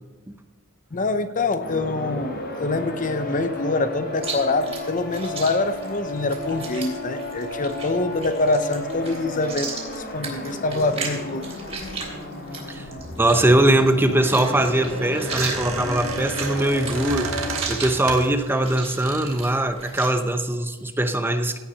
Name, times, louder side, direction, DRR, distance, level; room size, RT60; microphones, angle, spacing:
voice 1, 0.9-11.5, left 2 dB, 40° left, 10 dB, 0.7 m, -25 dB
sound 1, 1.6-17.6, left 1 dB, 55° left, 3.6 m, -33 dB
Chewing mastication, 4.2-20.1, right 4 dB, 30° right, 3.3 m, -36 dB
voice 2, 13.2-21.6, right 1 dB, 10° right, 7 dB, 0.7 m, -21 dB
Squeak, 14.0-18.4 19.0-19.5, right 4 dB, 85° right, 1.8 m, -32 dB
16.5 x 5.9 x 6.5 m, 1.2 s
head